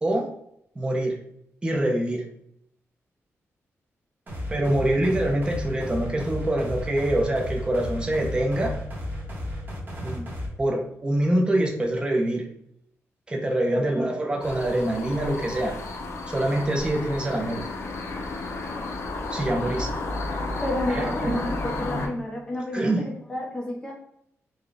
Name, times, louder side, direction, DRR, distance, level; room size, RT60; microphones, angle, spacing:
voice 1, 0.8-1.2 1.6-2.2 4.5-8.7 10.0-10.3 10.6-12.5 13.3-15.8 16.3-17.6 19.3-19.9 20.9-22.1 22.7-23.0, right 1 dB, 20° right, 1 dB, 0.6 m, -25 dB
sound 1, 4.3-10.5, left 1 dB, 40° right, 1.1 m, -33 dB
sound 2, 14.4-22.1, left 3 dB, 60° left, 0.6 m, -32 dB
voice 2, 20.6-23.9, left 1 dB, 15° left, -2 dB, 1.1 m, -31 dB
3.9 x 2.3 x 3.2 m, 0.73 s
wide cardioid pair, 140°, 5 cm